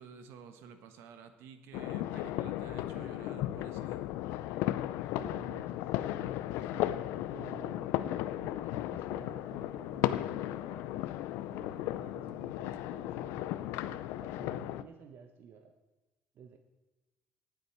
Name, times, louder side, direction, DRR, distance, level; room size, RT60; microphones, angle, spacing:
voice 1, 0.0-4.0, right 6 dB, 75° right, 8 dB, 1.4 m, -51 dB
sound 1, 1.7-14.8, left 14 dB, 85° left, 0.6 m, -35 dB
voice 2, 5.2-7.0 7.3-10.9 11.5-15.7 16.3-16.6, right 6 dB, 60° right, 6 dB, 1.1 m, -52 dB
18.5 x 8.0 x 4.6 m, 1.2 s
cardioid pair, 100°, 4 cm